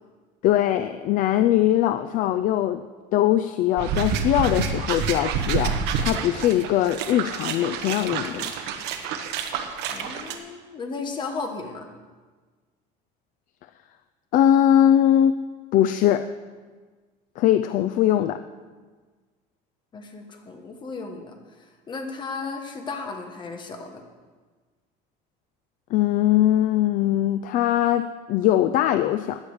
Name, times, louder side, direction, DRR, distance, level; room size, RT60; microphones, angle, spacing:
voice 1, 0.4-2.8 3.1-8.7 14.3-15.3 15.7-16.3 17.4-18.4 25.9-29.4, left 11 dB, 45° left, 10 dB, 0.4 m, -21 dB
sound 1, 3.8-10.3, right 6 dB, 65° right, 1.3 m, -28 dB
voice 2, 9.9-11.9 19.9-21.4 21.9-24.0, left 4 dB, 25° left, 4 dB, 1.4 m, -34 dB
15.5 x 10.0 x 4.9 m, 1.4 s
cardioid pair, 170°, 19 cm